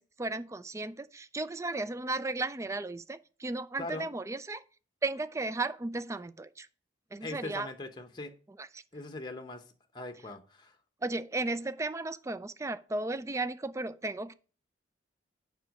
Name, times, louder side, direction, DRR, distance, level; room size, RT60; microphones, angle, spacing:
voice 1, 0.0-4.6 5.0-6.7 7.1-7.7 8.6-8.8 11.0-14.3, right 2 dB, 15° right, 0.3 m, -35 dB
voice 2, 7.2-8.3 8.9-9.6 9.9-10.8, left 2 dB, 25° left, 0.8 m, -40 dB
7.5 x 5.6 x 5.1 m
head